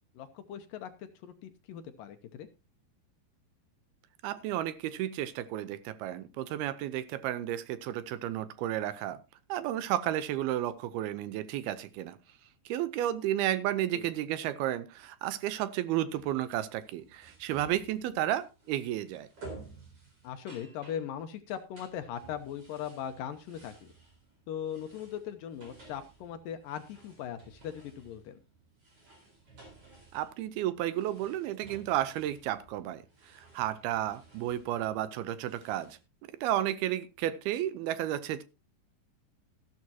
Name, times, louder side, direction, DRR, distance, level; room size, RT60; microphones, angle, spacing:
voice 1, 0.1-2.5 13.9-14.1 20.2-23.9 24.5-28.4, left 9 dB, 75° left, 8 dB, 2.3 m, -39 dB
voice 2, 4.2-9.2 9.5-12.2 12.7-19.3 30.1-36.0 36.4-38.4, right 12 dB, 80° right, 14 dB, 2.6 m, -32 dB
sound 1, 16.1-36.0, right 3 dB, 35° right, 4.9 m, -54 dB
14.0 x 12.0 x 2.8 m, 0.27 s
omnidirectional pair, 4.6 m